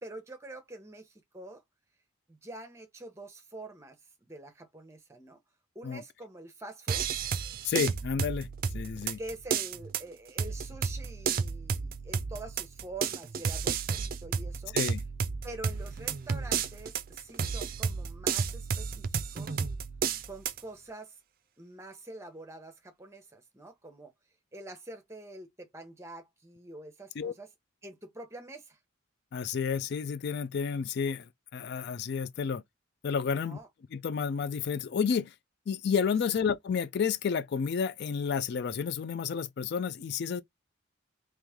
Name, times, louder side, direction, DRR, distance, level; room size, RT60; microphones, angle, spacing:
voice 1, 0.0-1.6 2.3-5.4 5.7-7.1 9.2-14.8 15.4-19.6 20.3-21.2 21.6-24.1 24.5-27.5 27.8-28.8 33.3-33.7 36.2-36.3, right 2 dB, 15° right, 0.8 m, -46 dB
sound 1, 6.9-20.6, right 6 dB, 45° right, 0.4 m, -32 dB
voice 2, 7.6-8.5 8.7-9.2 14.7-15.0 27.2-27.3 29.3-32.6 33.0-33.6 33.9-35.3 35.7-40.4, left 6 dB, 55° left, 0.3 m, -31 dB
3.1 x 3.0 x 3.5 m
head